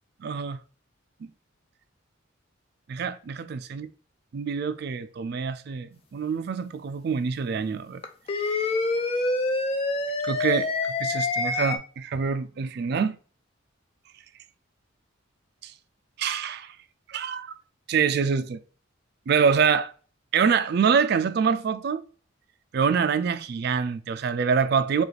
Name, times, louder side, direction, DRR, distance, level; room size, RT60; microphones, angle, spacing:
voice 1, 0.2-0.6 2.9-3.9 4.3-8.0 8.5-8.6 10.2-13.2 15.6-15.7 16.2-16.8 17.1-17.6 17.9-18.6 19.3-19.9 20.3-22.0 22.7-25.0, right 6 dB, 50° right, 0.3 m, -25 dB
sound 1, 8.0-11.8, left 3 dB, 30° left, 0.4 m, -26 dB
4.7 x 2.4 x 3.2 m
head